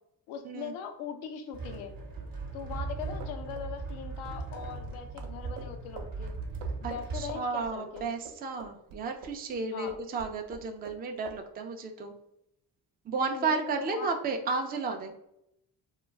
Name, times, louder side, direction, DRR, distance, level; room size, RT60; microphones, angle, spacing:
voice 1, 0.3-1.9 2.5-6.4 6.8-8.1 9.7-9.9 13.1-14.1, left 6 dB, 75° left, 6 dB, 0.6 m, -40 dB
sound 1, 1.5-7.3, right 3 dB, 45° right, 0.9 m, -38 dB
sound 2, 3.2-9.6 9.9-11.0 11.3-11.4, right 5 dB, 70° right, 0.6 m, -47 dB
voice 2, 6.8-12.1 13.0-15.1, right 4 dB, 20° right, 4 dB, 0.4 m, -33 dB
2.3 x 2.2 x 3.2 m, 0.80 s
hypercardioid pair, 45°, 49 cm